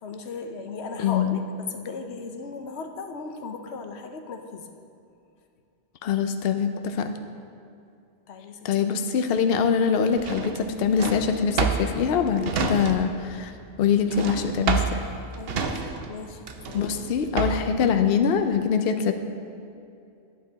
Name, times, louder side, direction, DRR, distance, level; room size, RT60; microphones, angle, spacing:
voice 1, 0.0-4.7 8.3-8.7 14.8-15.8 16.1-16.9, left 4 dB, 90° left, 6 dB, 1.0 m, -37 dB
voice 2, 1.0-1.4 6.0-7.2 8.6-13.5 13.8-14.8 16.7-19.1, left 6 dB, 70° left, 7 dB, 0.8 m, -23 dB
Drawer open or close, 10.2-13.3 13.5-17.8, right 5 dB, 65° right, 0.9 m, -29 dB
11.0 x 8.7 x 4.0 m, 2.6 s
omnidirectional pair, 1.1 m